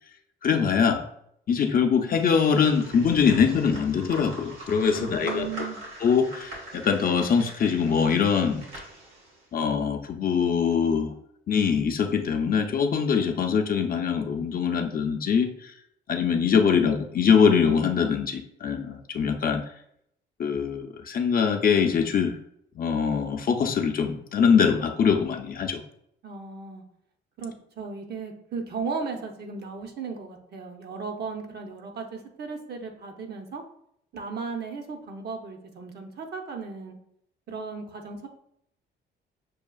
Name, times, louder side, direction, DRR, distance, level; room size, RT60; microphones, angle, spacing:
voice 1, 0.4-1.0 1.5-5.5 6.0-8.6 9.5-11.1 11.5-15.7 16.1-19.6 20.4-22.4 22.8-25.8, left 6 dB, 45° left, 5 dB, 0.5 m, -23 dB
sound 1, 2.1-9.4, right 1 dB, 90° right, 1.5 m, -42 dB
voice 2, 4.9-5.8 26.2-26.8 27.4-33.6 34.1-37.0 37.5-38.3, right 5 dB, 55° right, 4 dB, 0.7 m, -36 dB
6.2 x 2.4 x 2.3 m, 0.71 s
cardioid pair, 90°, 20 cm